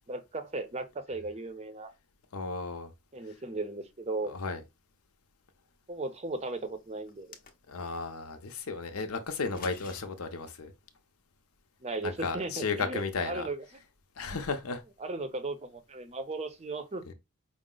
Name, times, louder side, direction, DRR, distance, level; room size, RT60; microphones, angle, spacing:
voice 1, 0.1-1.9 3.1-4.3 5.9-7.4 11.8-13.6 15.0-17.0, right 2 dB, 30° right, 0.6 m, -36 dB
voice 2, 2.3-2.9 4.3-4.6 7.7-10.7 12.0-13.5 14.2-14.8 17.1-17.2, left 4 dB, 75° left, 0.7 m, -34 dB
sound 1, 7.1-8.0 9.3-10.0, left 5 dB, 40° left, 0.6 m, -47 dB
5.0 x 2.1 x 3.7 m
head